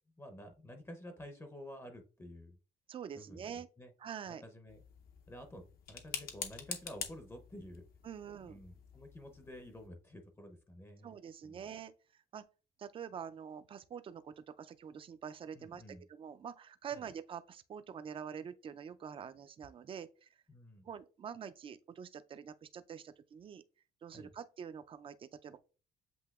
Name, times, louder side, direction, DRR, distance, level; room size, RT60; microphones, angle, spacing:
voice 1, 0.2-2.6 3.1-3.9 4.2-4.8 5.3-7.9 8.4-11.2 11.4-11.6 15.5-16.0 16.9-17.0 20.5-20.9 24.1-24.3, left 1 dB, 15° left, 0.6 m, -51 dB
voice 2, 2.9-3.7 4.0-4.4 8.0-8.6 11.0-11.9 12.3-12.4 12.8-20.3 20.8-23.6 24.0-25.6, right 7 dB, 30° right, 0.4 m, -46 dB
sound 1, 4.7-9.9, left 7 dB, 60° left, 0.7 m, -47 dB
7.8 x 2.7 x 2.3 m
cardioid pair, 110°, 17 cm